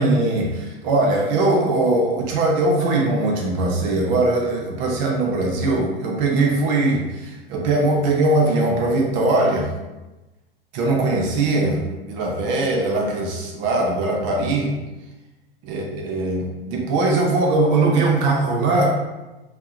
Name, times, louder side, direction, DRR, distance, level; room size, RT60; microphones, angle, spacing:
voice 1, 0.0-9.7 10.7-14.7 15.6-19.0, right 2 dB, 40° right, -1 dB, 0.5 m, -20 dB
2.6 x 2.1 x 2.3 m, 1.1 s
hypercardioid pair, 100°, 29 cm